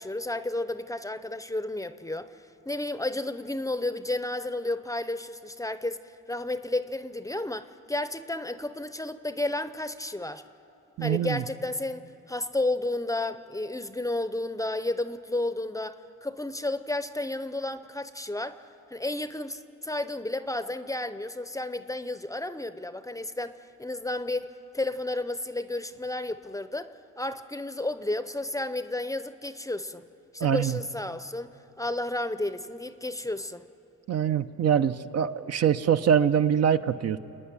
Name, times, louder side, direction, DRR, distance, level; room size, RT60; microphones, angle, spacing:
voice 1, 0.0-2.3 2.7-10.4 11.0-18.6 18.9-26.9 27.2-30.0 30.3-33.6, left 2 dB, 10° left, 12 dB, 0.6 m, -32 dB
voice 2, 11.0-11.4 30.4-30.8 34.1-37.2, right 8 dB, 55° right, 10 dB, 0.7 m, -24 dB
28.0 x 9.6 x 9.9 m, 2.9 s
cardioid pair, 90°, 30 cm